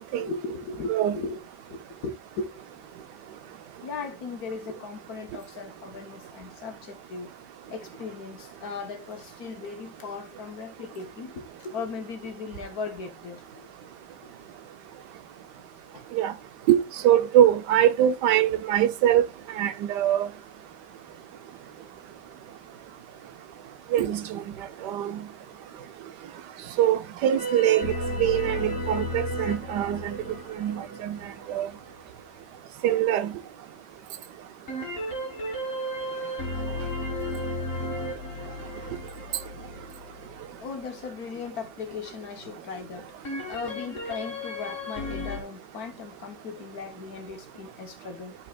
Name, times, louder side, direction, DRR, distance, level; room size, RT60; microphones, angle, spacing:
voice 1, 0.1-1.4 1.7-2.6 3.8-7.3 7.7-13.7 15.9-16.1 40.6-48.3, left 4 dB, 60° left, 1.5 m, -37 dB
voice 2, 16.7-19.2 19.5-20.3 23.9-24.4 24.8-25.2 26.8-30.2 30.6-31.2 31.5-31.7 32.8-33.3, right 11 dB, 75° right, 1.3 m, -23 dB
sound 1, 27.4-32.0 34.7-40.7 43.2-45.4, left 1 dB, 45° left, 2.0 m, -34 dB
12.0 x 4.6 x 2.3 m
omnidirectional pair, 1.9 m